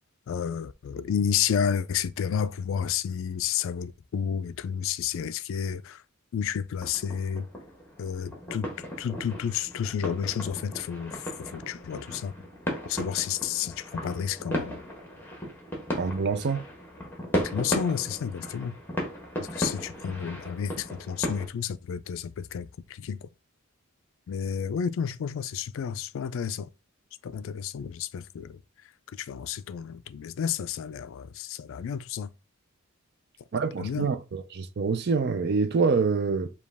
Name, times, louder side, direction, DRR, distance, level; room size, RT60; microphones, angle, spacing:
voice 1, 0.3-6.0 6.3-7.5 8.0-12.3 12.8-14.8 17.4-18.8 19.4-23.3 24.3-26.7 27.2-28.6 29.1-32.3 33.8-34.1, left 8 dB, 65° left, 0.3 m, -31 dB
sound 1, 6.8-21.5, equal, 10° left, 1.1 m, -36 dB
voice 2, 16.0-16.6 33.5-36.5, right 4 dB, 50° right, 0.5 m, -26 dB
5.1 x 2.3 x 3.4 m
head